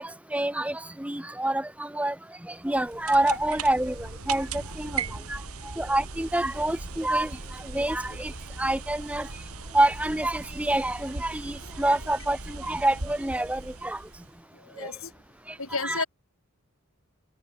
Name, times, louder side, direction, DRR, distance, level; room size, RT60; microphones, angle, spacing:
voice 1, 0.0-2.1 2.5-5.0 5.3-5.4 5.8-7.3 7.7-8.3 8.6-9.3 9.7-14.0 14.8-14.9 15.8-16.0, right 1 dB, 5° right, 0.6 m, -27 dB
sound 1, 2.6-14.4, right 4 dB, 90° right, 2.9 m, -39 dB
voice 2, 14.5-15.1 15.6-16.1, left 4 dB, 70° left, 4.0 m, -32 dB
head